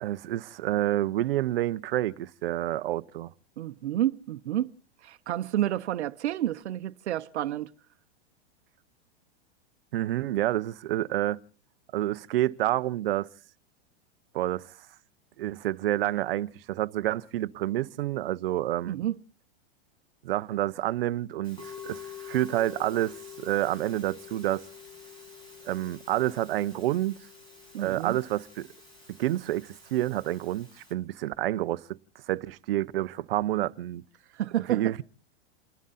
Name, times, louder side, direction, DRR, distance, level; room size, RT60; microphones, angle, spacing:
voice 1, 0.0-3.3 9.9-11.4 11.9-13.3 14.3-14.7 15.4-19.0 20.2-24.6 25.7-27.2 27.8-28.7 29.2-31.8 32.3-34.0 34.7-35.0, right 14 dB, 60° right, 0.9 m, -28 dB
voice 2, 3.6-4.7 5.0-7.7 18.8-19.2 27.7-28.2 34.3-34.9, right 12 dB, 85° right, 0.9 m, -30 dB
Musical instrument, 21.4-30.9, left 7 dB, 15° left, 6.3 m, -47 dB
29.5 x 11.5 x 4.2 m
supercardioid pair, 170°, 33 cm